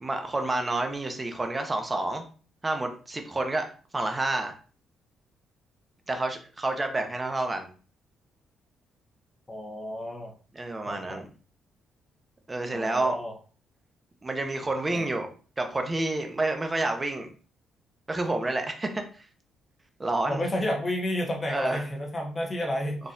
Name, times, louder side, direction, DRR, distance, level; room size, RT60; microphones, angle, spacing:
voice 1, 0.0-2.2 2.6-4.5 6.1-7.7 10.5-11.2 12.5-13.2 14.2-15.3 15.6-17.3 18.1-19.0 20.0-20.4 21.5-21.8, right 2 dB, 20° right, 5 dB, 0.7 m, -29 dB
voice 2, 9.5-10.3 10.8-11.2 12.7-13.3 14.9-15.1 20.3-23.0, left 1 dB, 25° left, 0 dB, 1.0 m, -31 dB
4.1 x 2.7 x 2.5 m, 0.38 s
cardioid pair, 110°, 0 cm